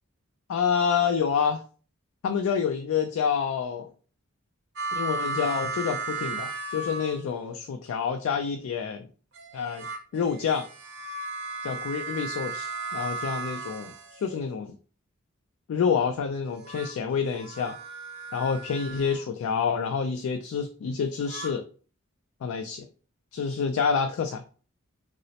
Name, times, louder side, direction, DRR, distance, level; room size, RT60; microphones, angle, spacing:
voice 1, 0.5-1.6 2.2-3.9 4.9-9.1 9.5-9.9 10.1-10.7 11.6-14.8 15.7-17.8 18.3-21.7 22.4-22.9 23.3-24.4, left 6 dB, 75° left, 6 dB, 0.3 m, -28 dB
sound 1, 4.8-7.6 9.3-14.6 16.4-19.3 21.0-21.5, right 3 dB, 50° right, 0.5 m, -35 dB
3.9 x 2.0 x 2.7 m, 0.39 s
head